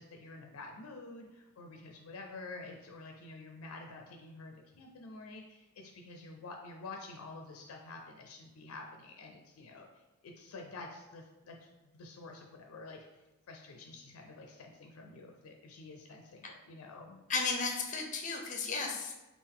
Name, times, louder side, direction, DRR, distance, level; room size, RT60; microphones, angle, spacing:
voice 1, 0.0-9.9 10.2-13.1 13.5-17.2, left 3 dB, 90° left, 3 dB, 0.4 m, -49 dB
voice 2, 17.3-19.1, left 4 dB, 35° left, 2 dB, 0.6 m, -34 dB
3.6 x 2.4 x 3.6 m, 1.1 s
head